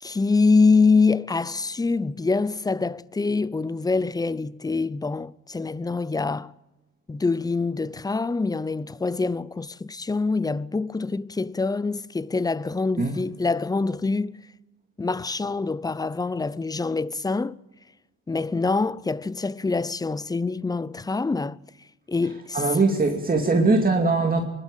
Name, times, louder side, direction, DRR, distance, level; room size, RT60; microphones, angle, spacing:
voice 1, 0.0-6.5 7.1-14.3 15.0-17.6 18.3-21.6 22.1-22.8, left 4 dB, 15° left, 0.6 m, -25 dB
voice 2, 22.5-24.4, right 3 dB, 30° right, 2.6 m, -21 dB
24.0 x 12.0 x 9.1 m
cardioid pair, 90°, 30 cm